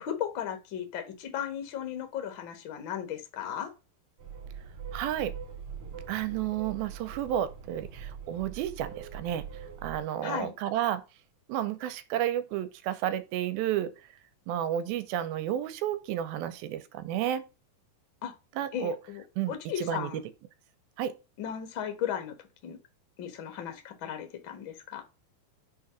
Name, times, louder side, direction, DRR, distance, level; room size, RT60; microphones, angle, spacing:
voice 1, 0.0-3.7 10.2-10.5 18.2-18.3 18.7-20.2 21.4-22.3 22.6-22.8 23.2-25.0, left 9 dB, 75° left, 1.1 m, -36 dB
sound 1, 4.2-10.0, right 7 dB, 45° right, 2.2 m, -43 dB
voice 2, 4.9-5.3 6.1-9.5 9.8-11.0 11.5-13.9 14.5-17.4 18.6-19.0 19.4-20.1 21.0-21.1, right 11 dB, 90° right, 2.5 m, -31 dB
6.3 x 3.8 x 6.2 m
omnidirectional pair, 4.3 m